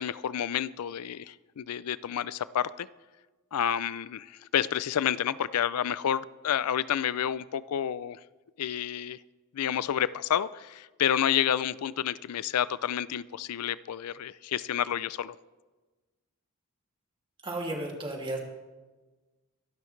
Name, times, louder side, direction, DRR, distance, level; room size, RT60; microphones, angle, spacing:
voice 1, 0.0-2.9 3.5-8.2 8.6-9.2 9.5-15.4, left 9 dB, 90° left, 18 dB, 0.4 m, -29 dB
voice 2, 17.4-18.4, right 2 dB, 25° right, 0 dB, 2.5 m, -33 dB
24.0 x 12.0 x 3.2 m, 1.2 s
head